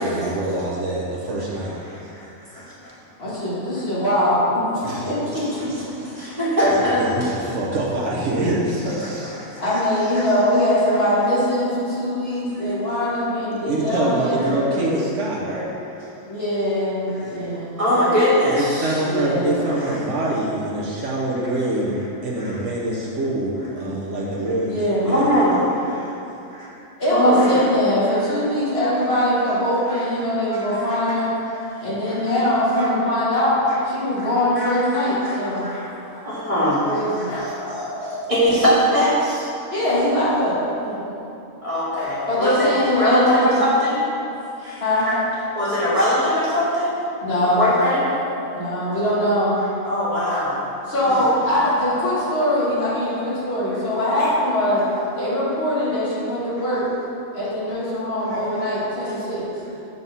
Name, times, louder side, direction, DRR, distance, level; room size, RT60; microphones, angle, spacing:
voice 1, 0.0-1.7 4.8-6.3 7.0-9.3 13.6-15.7 17.2-17.4 18.5-24.7 25.0-25.3, right 1 dB, 65° right, -4 dB, 1.1 m, -25 dB
voice 2, 1.8-2.3 2.5-2.9 6.1-7.3 9.0-9.6 10.2-10.3 17.2-17.4 17.8-19.0 22.4-22.6 23.8-23.9 25.1-26.1 26.5-26.7 27.1-27.6 28.1-28.4 29.9-30.0 30.5-31.0 32.0-32.2 32.7-32.9 33.7-33.8 34.2-34.3 34.6-35.9 36.2-39.5 41.6-42.7 43.0-44.0 44.6-44.8 45.5-46.9 47.4-48.0 49.8-50.6 51.0-51.2 58.3-58.6, equal, 25° right, -9 dB, 1.8 m, -22 dB
voice 3, 3.2-6.2 9.6-15.0 16.3-17.8 19.1-19.7 24.7-25.1 27.0-31.4 31.8-33.6 33.8-35.6 36.6-37.3 39.7-41.0 42.3-43.6 44.8-45.1 47.2-47.7 48.5-49.6 50.1-50.2 50.9-54.9 55.1-56.9 57.3-59.5, left 1 dB, 45° left, -9 dB, 2.0 m, -22 dB
sound 1, 35.6-36.9 37.3-38.9 39.9-41.3 41.9-43.6 45.1-46.7 47.8-49.4 50.3-50.5 51.6-53.2 54.2-55.4, left 1 dB, 80° left, 1.6 m, -35 dB
7.3 x 4.0 x 5.5 m, 2.8 s
omnidirectional pair, 1.4 m